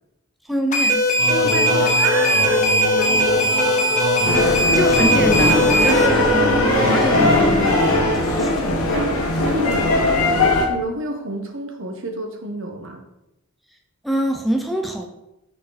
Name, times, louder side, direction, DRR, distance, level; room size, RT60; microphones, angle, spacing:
voice 1, 0.4-1.1 4.5-6.5 6.8-9.1 14.0-15.1, equal, ahead, 3 dB, 0.5 m, -25 dB
sound 1, 0.7-6.1, equal, 35° left, 1.2 m, -19 dB
sound 2, 1.2-8.6, equal, 45° right, 1.8 m, -25 dB
voice 2, 1.3-3.5 5.5-6.2 8.9-13.0, right 2 dB, 60° right, 4 dB, 1.2 m, -29 dB
sound 3, 4.2-10.7, left 2 dB, 80° left, 1.3 m, -19 dB
6.4 x 6.4 x 4.0 m, 0.91 s
head